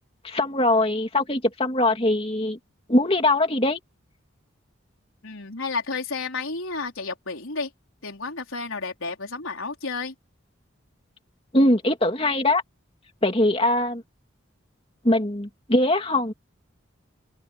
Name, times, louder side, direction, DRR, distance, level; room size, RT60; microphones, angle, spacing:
voice 1, 0.2-2.6 2.9-3.8 11.5-12.6 13.2-14.0 15.0-16.3, left 1 dB, 25° left, 2.7 m, -21 dB
voice 2, 5.2-7.7 8.0-10.1, left 4 dB, 85° left, 4.4 m, -31 dB
open air
head